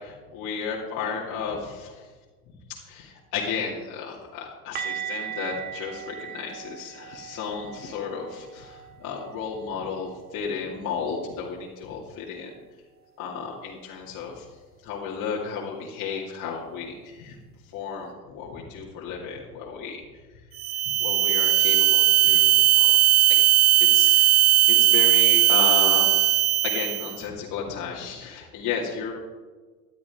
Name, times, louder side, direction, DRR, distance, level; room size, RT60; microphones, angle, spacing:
voice 1, 0.0-2.0 2.7-12.5 13.2-14.4 14.8-17.3 17.7-20.0 21.0-23.0 23.8-26.2 26.6-29.1, left 6 dB, 45° left, -4 dB, 2.4 m, -33 dB
sound 1, 4.8-10.5 10.8-11.0 11.4-11.5 14.8-14.9, right 9 dB, 20° right, 0.6 m, -39 dB
sound 2, 20.6-27.2, right 14 dB, 80° right, 0.8 m, -18 dB
13.5 x 11.5 x 3.6 m, 1.4 s
hypercardioid pair, 105°, 44 cm